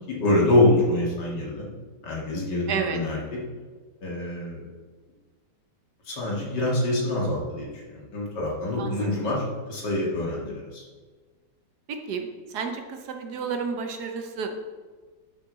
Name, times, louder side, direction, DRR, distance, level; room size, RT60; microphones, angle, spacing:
voice 1, 0.0-1.7 2.0-3.2 4.0-4.6 6.1-7.7 7.9-9.4 9.7-10.8, left 1 dB, 75° left, -3 dB, 2.7 m, -25 dB
voice 2, 2.7-3.0 8.8-9.1 11.9-14.5, right 5 dB, 70° right, 5 dB, 1.4 m, -31 dB
12.0 x 6.5 x 4.0 m, 1.4 s
omnidirectional pair, 1.8 m